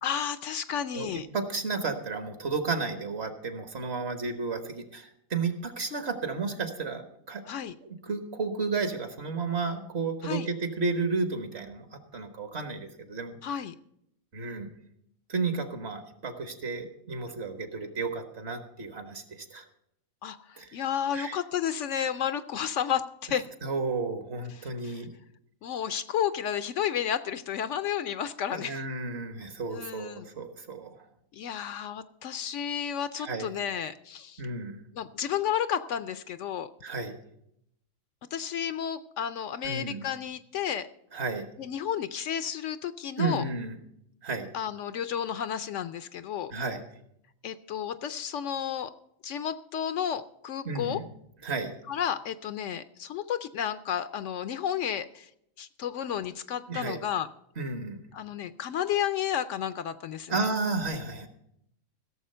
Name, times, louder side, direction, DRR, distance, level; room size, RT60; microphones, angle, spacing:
voice 1, 0.0-1.3 7.5-7.7 10.2-10.5 13.4-13.7 20.2-23.5 24.5-25.0 25.6-28.9 29.7-30.3 31.3-34.4 34.9-36.7 38.3-40.9 41.6-43.4 44.5-46.5 47.4-48.9 49.2-51.0 51.9-55.3 55.6-57.3 58.1-60.4, left 9 dB, 70° left, 12 dB, 0.9 m, -32 dB
voice 2, 1.3-7.4 7.8-13.4 14.3-14.7 15.3-19.6 20.6-20.7 21.1-21.4 23.6-25.1 28.5-31.0 33.2-33.5 34.4-34.8 36.8-37.2 39.6-40.1 41.1-41.5 43.2-43.8 44.2-44.5 46.5-46.8 50.6-51.1 51.4-51.7 56.7-57.0 57.6-58.0 60.3-61.3, right 4 dB, 50° right, 7 dB, 1.5 m, -32 dB
16.0 x 7.1 x 5.5 m, 0.75 s
omnidirectional pair, 1.4 m